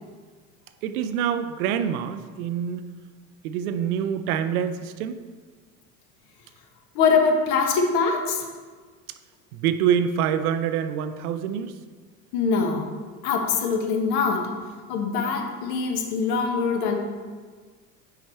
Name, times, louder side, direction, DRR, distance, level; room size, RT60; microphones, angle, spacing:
voice 1, 0.8-2.9 3.4-5.2 9.5-11.8, right 8 dB, 65° right, 11 dB, 0.6 m, -26 dB
voice 2, 6.9-8.5 12.3-12.9 13.2-14.5 14.9-17.0, left 5 dB, 50° left, 3 dB, 1.2 m, -23 dB
5.7 x 4.8 x 4.4 m, 1.5 s
hypercardioid pair, 75°, 48 cm